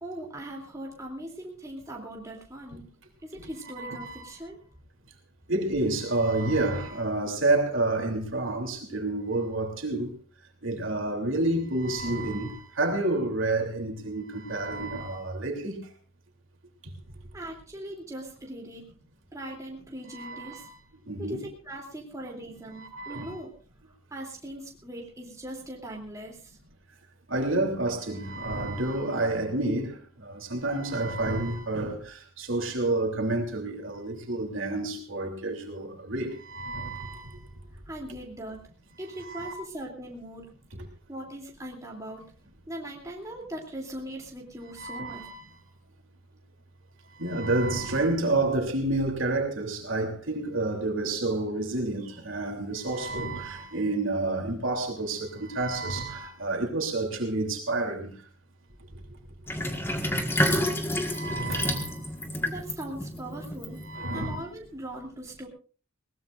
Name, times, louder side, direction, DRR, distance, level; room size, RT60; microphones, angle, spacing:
voice 1, 0.0-2.8 3.2-4.6 17.3-18.9 19.3-20.7 21.2-23.5 24.1-26.6 37.9-38.6 39.0-40.5 41.1-42.2 42.7-45.3 62.5-63.8 64.1-65.5, right 1 dB, 15° right, 3.0 m, -40 dB
voice 2, 3.8-4.4 5.5-10.1 10.6-15.8 20.1-20.7 21.1-21.4 22.7-23.4 27.3-37.5 39.1-39.5 44.8-45.3 47.1-58.1 60.9-62.1 63.8-64.4, right 2 dB, 65° right, 3.2 m, -29 dB
Sink (filling or washing), 59.5-64.2, left 1 dB, 10° left, 1.7 m, -29 dB
20.5 x 19.0 x 2.6 m
head